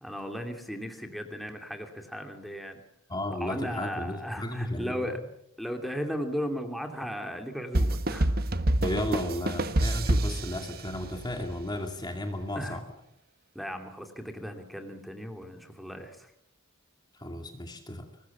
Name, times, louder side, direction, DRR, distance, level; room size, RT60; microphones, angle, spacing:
voice 1, 0.0-2.8 3.4-5.2 5.6-8.3 12.5-12.8 13.5-16.3, equal, ahead, 5 dB, 2.6 m, -36 dB
voice 2, 3.1-5.1 8.8-12.8 17.1-18.1, left 1 dB, 20° left, 5 dB, 2.3 m, -34 dB
sound 1, 7.7-11.3, right 1 dB, 45° right, 1.3 m, -27 dB
24.5 x 20.0 x 7.2 m, 0.74 s
head